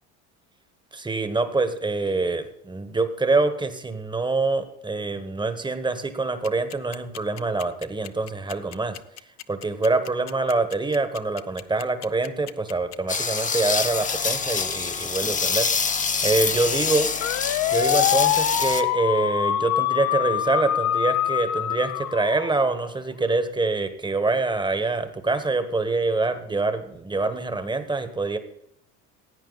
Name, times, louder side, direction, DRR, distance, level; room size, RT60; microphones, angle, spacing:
voice 1, 0.9-9.0 9.5-15.7 16.2-17.1 17.7-28.4, right 3 dB, 15° right, 10 dB, 1.3 m, -25 dB
sound 1, 6.4-22.9, left 11 dB, 50° left, 0.7 m, -25 dB
sound 2, 13.1-18.8, left 5 dB, 20° left, 0.9 m, -26 dB
16.0 x 8.9 x 4.1 m, 0.73 s
supercardioid pair, 100°, 35 cm